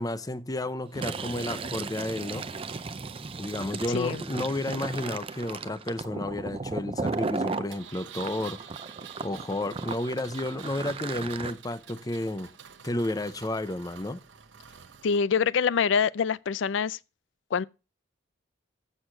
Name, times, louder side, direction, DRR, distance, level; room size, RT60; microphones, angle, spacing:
voice 1, 0.0-2.5 3.4-8.7 9.2-12.5 12.8-14.2, left 1 dB, 20° left, 0.6 m, -32 dB
Fill (with liquid), 0.9-7.7 8.2-11.5, right 4 dB, 30° right, 0.5 m, -35 dB
voice 2, 3.9-4.2 15.0-17.0 17.5-17.6, left 6 dB, 75° left, 0.4 m, -25 dB
Engine, 7.7-15.2, right 8 dB, 70° right, 0.8 m, -47 dB
7.9 x 6.4 x 6.0 m
head